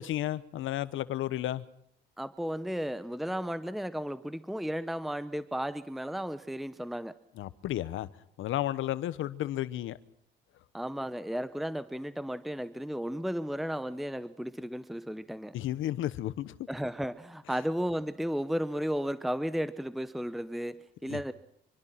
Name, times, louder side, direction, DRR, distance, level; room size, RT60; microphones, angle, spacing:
voice 1, 0.0-1.6 7.3-8.1 8.4-10.0 15.5-16.6 21.1-21.2, left 13 dB, 85° left, 1.1 m, -32 dB
voice 2, 2.2-7.2 10.7-15.6 16.7-21.3, equal, ahead, 0.9 m, -34 dB
25.5 x 24.0 x 5.9 m
cardioid pair, 90°, 20 cm